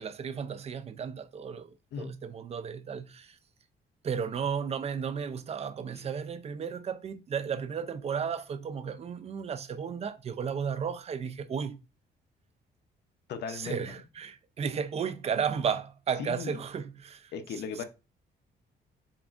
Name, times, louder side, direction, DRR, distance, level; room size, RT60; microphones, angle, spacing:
voice 1, 0.0-3.4 4.0-11.8 13.5-17.8, right 7 dB, 35° right, 0.4 m, -34 dB
voice 2, 13.3-13.8 16.2-16.5 17.3-17.8, left 6 dB, 75° left, 0.7 m, -36 dB
7.0 x 2.5 x 2.4 m
cardioid pair, 120°, 17 cm